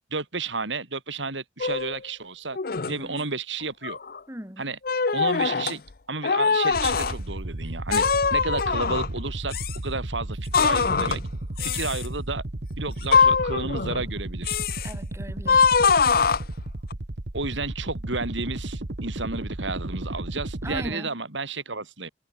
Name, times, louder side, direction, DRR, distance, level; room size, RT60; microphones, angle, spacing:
voice 1, 0.1-2.6 2.9-4.0 4.6-4.8 5.1-5.8 6.1-8.1 8.3-9.5 9.8-11.2 11.6-12.4 12.8-14.6 17.3-22.1, right 3 dB, 90° right, 4.3 m, -32 dB
bathroom door, 1.6-2.0 2.5-3.0 3.6-4.2 4.8-5.8 6.2-7.1 7.9-9.2 9.5-9.8 10.5-11.2 11.6-12.1 13.0-14.1 14.4-14.9 15.5-16.9, left 5 dB, 55° left, 0.7 m, -22 dB
voice 2, 4.3-4.7 14.8-15.9 20.6-21.1, right 1 dB, 15° right, 4.1 m, -38 dB
sound 1, 6.7-20.9, right 1 dB, 65° right, 1.3 m, -34 dB
head